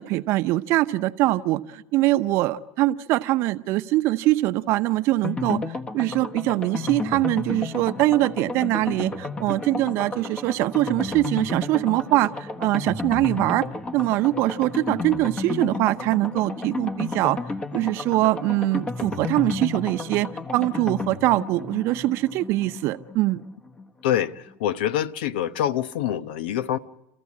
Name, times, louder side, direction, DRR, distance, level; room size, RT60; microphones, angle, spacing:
voice 1, 0.0-13.7 13.9-17.4 17.7-23.4, right 17 dB, 55° right, 0.8 m, -23 dB
sound 1, 5.2-23.8 24.1-24.2 24.5-24.6, left 3 dB, 20° left, 1.3 m, -32 dB
voice 2, 24.0-24.3 24.6-26.8, left 11 dB, 80° left, 1.0 m, -25 dB
28.0 x 14.5 x 8.6 m
supercardioid pair, 110°, 5 cm